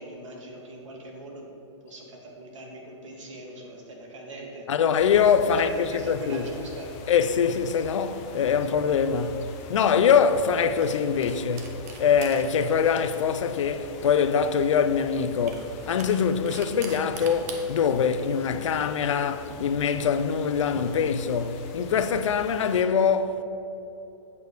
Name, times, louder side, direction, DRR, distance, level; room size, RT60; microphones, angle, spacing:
voice 1, 0.0-1.5 1.8-4.7 5.5-6.9, right 1 dB, 80° right, 1.7 m, -40 dB
voice 2, 4.7-6.5 7.1-23.4, left 6 dB, 80° left, 0.5 m, -23 dB
sound 1, 4.9-22.8, left 4 dB, 15° left, 0.3 m, -44 dB
sound 2, 8.4-20.8, right 5 dB, 30° right, 0.6 m, -46 dB
8.2 x 3.4 x 6.5 m
hypercardioid pair, 170°, 16 cm